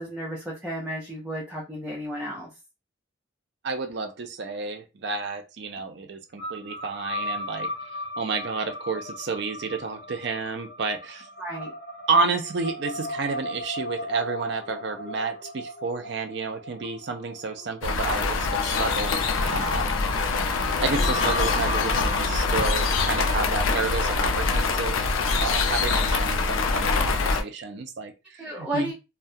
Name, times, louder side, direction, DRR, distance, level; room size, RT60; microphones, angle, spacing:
voice 1, 0.0-2.5 11.4-11.7 28.4-28.9, right 1 dB, 5° right, -6 dB, 0.6 m, -33 dB
voice 2, 3.6-7.7 8.2-11.3 12.1-19.9 20.8-25.1 25.4-28.9, right 4 dB, 60° right, 6 dB, 0.5 m, -30 dB
sound 1, 6.4-24.5, left 1 dB, 55° left, 0.8 m, -37 dB
sound 2, 17.8-27.4, left 4 dB, 85° left, 0.4 m, -24 dB
2.3 x 2.1 x 2.6 m, 0.26 s
head